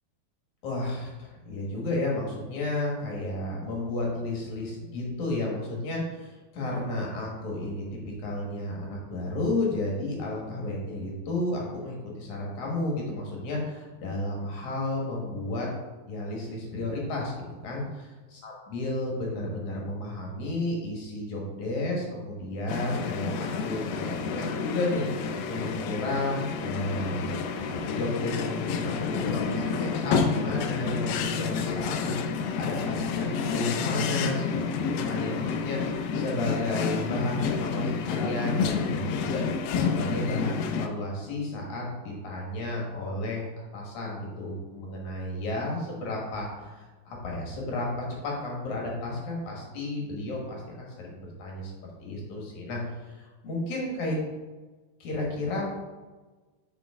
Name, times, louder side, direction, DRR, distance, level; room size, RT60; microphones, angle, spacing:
voice 1, 0.6-7.9 8.2-15.7 16.1-17.3 17.6-18.1 18.4-27.2 27.7-34.5 34.7-35.8 36.1-39.4 39.8-51.7 52.0-54.1 55.0-55.6, left 2 dB, 55° left, -2 dB, 2.4 m, -32 dB
sound 1, 22.7-40.9, left 5 dB, 80° left, 2.1 m, -29 dB
8.7 x 5.6 x 3.6 m, 1.3 s
omnidirectional pair, 4.9 m